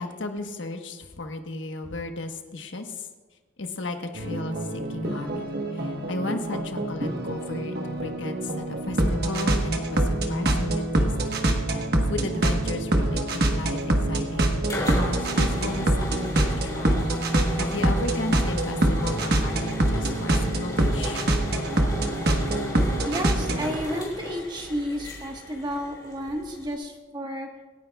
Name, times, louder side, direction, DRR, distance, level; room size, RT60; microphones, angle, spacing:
voice 1, 0.0-3.1 3.6-11.4 11.7-14.6 14.9-17.1 17.6-21.3, left 2 dB, 85° left, 5 dB, 1.2 m, -34 dB
sound 1, 4.1-23.8, right 1 dB, 55° right, 1.3 m, -25 dB
sound 2, 14.2-26.7, left 1 dB, 20° left, 3.3 m, -35 dB
voice 2, 23.0-27.5, equal, 25° right, 2 dB, 1.4 m, -31 dB
26.0 x 10.0 x 2.4 m, 1.3 s
head